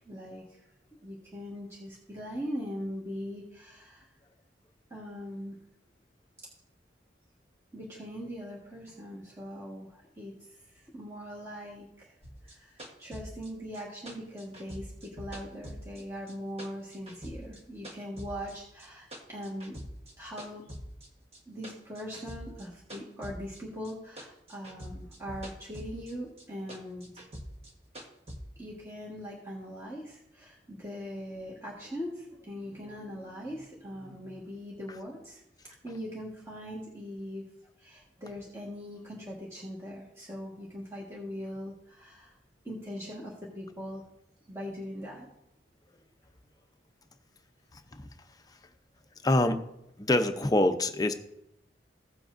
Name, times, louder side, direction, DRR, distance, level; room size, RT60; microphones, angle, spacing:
voice 1, 0.0-0.6 1.0-4.1 4.9-5.6 7.7-10.5 10.9-12.2 12.5-19.8 20.2-20.6 21.5-27.1 28.6-35.4 35.8-37.4 37.8-42.4 42.6-44.0 44.5-45.3, equal, 15° right, -5 dB, 1.5 m, -41 dB
sound 1, 12.2-16.3 16.6-18.5 18.8-20.1 20.4-23.9 24.2-26.1 26.4-28.4, equal, 35° right, 1.3 m, -44 dB
voice 2, 47.7-48.0 49.2-49.6 50.0-51.1, left 1 dB, 20° left, 8 dB, 0.6 m, -25 dB
15.5 x 7.5 x 2.6 m, 0.78 s
head